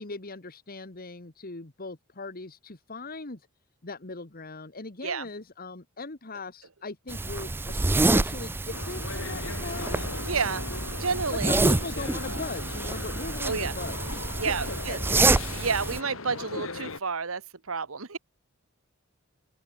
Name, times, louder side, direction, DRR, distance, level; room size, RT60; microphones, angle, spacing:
voice 1, 0.0-3.5 3.8-10.3 11.3-15.0 16.5-16.7, left 3 dB, 45° left, 1.7 m, -39 dB
sound 1, 7.1-16.0, right 2 dB, 10° right, 0.3 m, -27 dB
sound 2, 8.7-17.0, left 3 dB, 70° left, 2.3 m, -38 dB
voice 2, 10.3-10.6 11.0-11.5 13.4-13.7 14.4-15.2 15.5-17.4 17.7-18.2, right 5 dB, 80° right, 1.4 m, -30 dB
open air
head